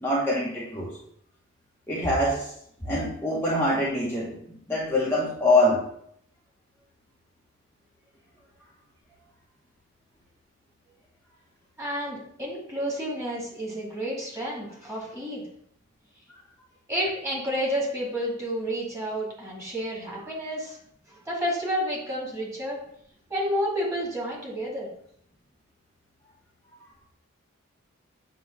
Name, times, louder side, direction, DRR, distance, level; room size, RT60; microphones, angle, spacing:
voice 1, 0.0-1.0 1.9-2.5 2.8-5.9, left 1 dB, 10° left, -6 dB, 1.0 m, -24 dB
voice 2, 11.8-15.4 16.9-20.8 21.1-22.8 23.3-24.9, equal, 15° right, -5 dB, 2.5 m, -30 dB
7.7 x 3.1 x 6.1 m, 0.69 s
head